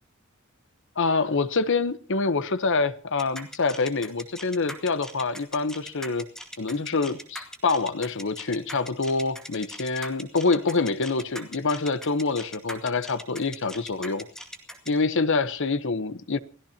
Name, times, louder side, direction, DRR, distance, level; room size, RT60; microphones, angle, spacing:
voice 1, 1.0-6.3 6.6-14.3 14.9-16.4, left 4 dB, 60° left, 1.0 m, -26 dB
sound 1, 3.2-14.9, equal, 5° left, 2.2 m, -40 dB
29.0 x 16.5 x 2.9 m
head